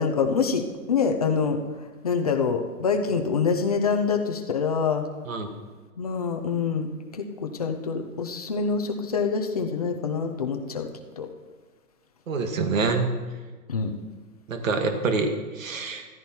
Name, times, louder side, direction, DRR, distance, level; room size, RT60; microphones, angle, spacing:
voice 1, 0.0-1.6 2.0-5.1 6.0-10.9 11.2-11.3 13.7-13.9, left 5 dB, 25° left, 4 dB, 0.7 m, -26 dB
voice 2, 12.3-13.1 14.5-16.1, right 4 dB, 55° right, 5 dB, 2.0 m, -26 dB
14.5 x 14.0 x 4.5 m, 1.4 s
hypercardioid pair, 175°, 46 cm